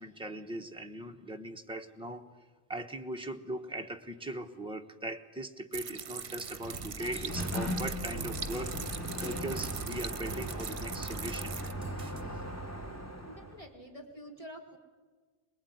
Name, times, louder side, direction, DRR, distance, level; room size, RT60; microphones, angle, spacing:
voice 1, 0.0-2.3 2.7-11.6 12.0-12.1 12.3-12.4, right 1 dB, 5° right, 4 dB, 1.1 m, -40 dB
sound 1, 5.7-11.7, right 7 dB, 60° right, 1.1 m, -41 dB
Sliding door, 6.3-13.7, equal, 15° left, 1.8 m, -38 dB
sound 2, 6.8-12.2, right 4 dB, 35° right, 1.2 m, -49 dB
voice 2, 13.3-14.8, equal, 30° left, 0 dB, 2.7 m, -48 dB
23.5 x 20.5 x 9.5 m, 1.4 s
omnidirectional pair, 1.2 m